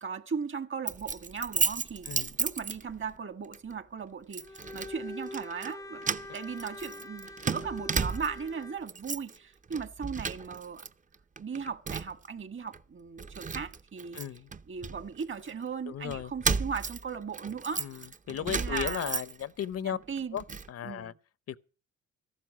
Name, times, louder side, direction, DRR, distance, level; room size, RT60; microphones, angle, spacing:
voice 1, 0.0-6.1 6.3-10.8 11.4-14.2 14.7-18.1 18.4-19.1 19.8-20.4 20.8-21.2, right 6 dB, 40° right, 1.5 m, -37 dB
Keys jangling, 0.9-3.2 3.5-3.7 4.3-4.9 5.3-5.7 6.0-8.5 8.8-9.4 9.7-10.9 11.1-12.3 12.7-12.8 13.2-15.5 16.1-19.7 20.0-20.7, right 5 dB, 25° right, 0.7 m, -34 dB
Bowed string instrument, 4.4-8.9, left 2 dB, 10° left, 0.6 m, -44 dB
voice 2, 14.1-14.5 15.9-16.3 17.8-20.0 20.3-21.1 21.5-21.6, left 9 dB, 55° left, 0.7 m, -36 dB
14.0 x 12.5 x 6.0 m
cardioid pair, 90°, 30 cm